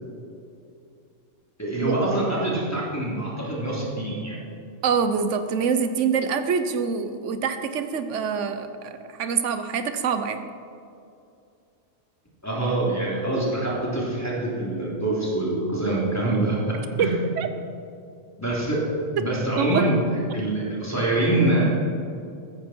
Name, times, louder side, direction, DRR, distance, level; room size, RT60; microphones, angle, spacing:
voice 1, 1.6-4.4 12.4-17.2 18.4-18.8 19.2-20.0 20.3-21.7, right 2 dB, 10° left, -7 dB, 3.4 m, -25 dB
voice 2, 4.8-10.5 17.0-17.5 19.6-19.9, right 6 dB, 70° right, 9 dB, 1.2 m, -25 dB
15.5 x 13.0 x 4.5 m, 2.5 s
omnidirectional pair, 1.3 m